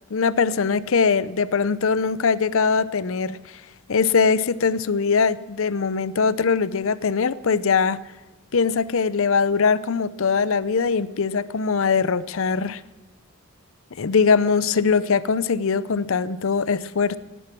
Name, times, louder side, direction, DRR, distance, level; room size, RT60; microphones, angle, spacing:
voice 1, 0.1-3.4 3.9-8.0 8.5-12.8 14.0-17.2, left 5 dB, 60° left, 17 dB, 0.6 m, -21 dB
17.0 x 11.0 x 5.9 m, 1.1 s
head